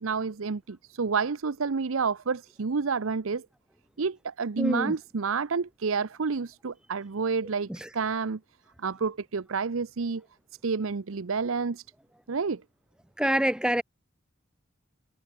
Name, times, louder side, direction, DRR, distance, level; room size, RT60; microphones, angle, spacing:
voice 1, 0.0-3.5 4.0-8.4 8.8-10.2 10.6-11.8 12.3-12.6, right 5 dB, 85° right, 0.7 m, -29 dB
voice 2, 4.6-4.9 7.7-7.9 13.2-13.8, right 1 dB, 5° right, 0.9 m, -26 dB
head